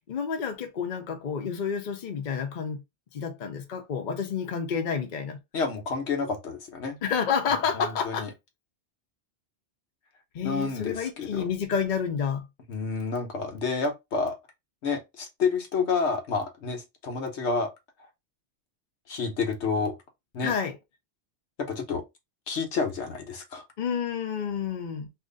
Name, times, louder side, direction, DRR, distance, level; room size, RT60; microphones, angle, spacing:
voice 1, 0.1-2.8 3.1-5.4 7.0-8.3 10.3-12.4 20.4-20.8 23.8-25.1, left 6 dB, 50° left, 0.8 m, -29 dB
voice 2, 5.5-7.0 7.7-8.3 10.4-11.4 12.7-14.4 14.8-17.7 19.1-20.0 20.3-20.5 21.6-22.0 22.5-23.6, left 4 dB, 80° left, 1.1 m, -29 dB
2.8 x 2.6 x 3.7 m
omnidirectional pair, 1.2 m